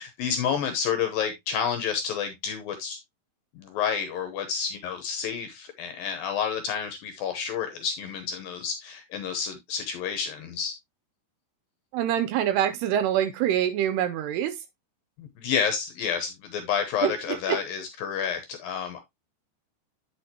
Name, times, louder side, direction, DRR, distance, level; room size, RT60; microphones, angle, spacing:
voice 1, 0.0-3.0 3.6-10.7 15.2-19.0, left 7 dB, 75° left, 2.2 m, -30 dB
voice 2, 11.9-14.6 17.0-17.6, right 10 dB, 80° right, 2.5 m, -25 dB
8.6 x 6.3 x 2.8 m
omnidirectional pair, 5.0 m